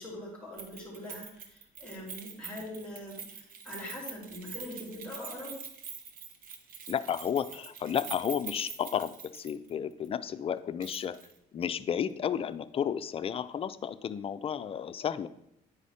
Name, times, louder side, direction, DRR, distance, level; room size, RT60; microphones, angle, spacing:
voice 1, 0.0-5.6, left 1 dB, 5° left, -2 dB, 3.4 m, -43 dB
Keys jangling, 0.6-9.7 10.0-10.1 10.8-11.3 11.6-11.7, right 6 dB, 55° right, 1.0 m, -45 dB
voice 2, 6.9-11.3 11.5-15.3, left 8 dB, 35° left, 12 dB, 0.4 m, -32 dB
9.4 x 4.8 x 4.2 m, 0.77 s
cardioid pair, 110°, 17 cm